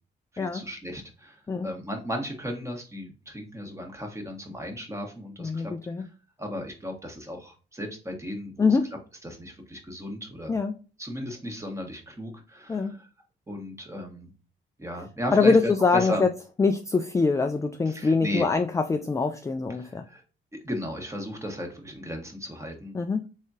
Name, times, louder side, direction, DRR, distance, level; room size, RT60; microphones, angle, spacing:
voice 1, 0.3-5.7 6.0-6.1 6.4-8.7 9.2-10.6 11.0-13.1 13.5-14.3 14.8-16.2 17.9-18.5 19.8-20.2 20.6-22.9, equal, 15° right, 1.3 m, -35 dB
voice 2, 5.4-6.1 8.6-8.9 10.5-10.8 12.7-12.9 15.3-16.3 16.6-20.0 22.9-23.3, left 4 dB, 15° left, 0.4 m, -24 dB
3.6 x 3.5 x 2.7 m
cardioid pair, 90°, 20 cm